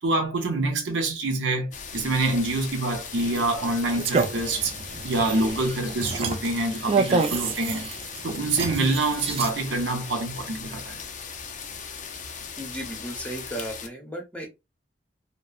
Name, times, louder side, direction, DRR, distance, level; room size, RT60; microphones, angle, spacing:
voice 1, 0.0-4.8 5.0-7.9 8.2-11.0, right 2 dB, 90° right, 0.7 m, -26 dB
sound 1, 1.7-13.9, left 6 dB, 45° left, 0.4 m, -38 dB
sound 2, 3.2-9.5, right 4 dB, 35° right, 0.3 m, -29 dB
voice 2, 12.6-14.5, right 1 dB, 5° left, 0.8 m, -35 dB
2.9 x 2.0 x 2.3 m
head